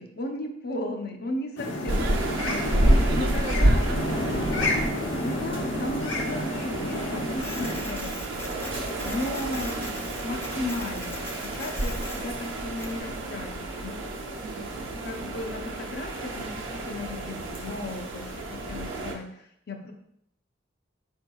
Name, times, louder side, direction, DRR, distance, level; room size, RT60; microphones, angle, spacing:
voice 1, 0.0-3.8 5.2-9.9 10.1-14.4 15.0-19.9, left 1 dB, 55° left, 3 dB, 0.6 m, -36 dB
sound 1, 1.6-7.8, left 1 dB, 80° left, 0.8 m, -30 dB
voice 2, 1.9-2.4 3.0-4.9 9.5-10.1 14.4-15.0, right 4 dB, 50° right, 6 dB, 0.4 m, -40 dB
sound 2, 1.9-19.1, right 1 dB, 85° right, 0.9 m, -29 dB
Printer, 7.4-13.0, left 2 dB, 10° left, 0.4 m, -41 dB
5.0 x 4.4 x 2.3 m, 0.72 s
head